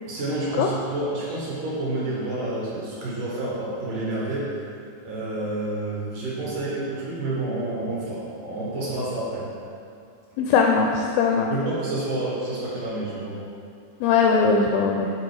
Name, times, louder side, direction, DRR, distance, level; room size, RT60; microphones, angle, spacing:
voice 1, 0.1-4.5 5.0-9.4 11.5-13.4, right 2 dB, 60° right, -6 dB, 2.6 m, -29 dB
voice 2, 10.4-11.5 14.0-15.1, left 5 dB, 85° left, 1 dB, 2.1 m, -20 dB
9.5 x 4.0 x 4.8 m, 2.5 s
omnidirectional pair, 4.7 m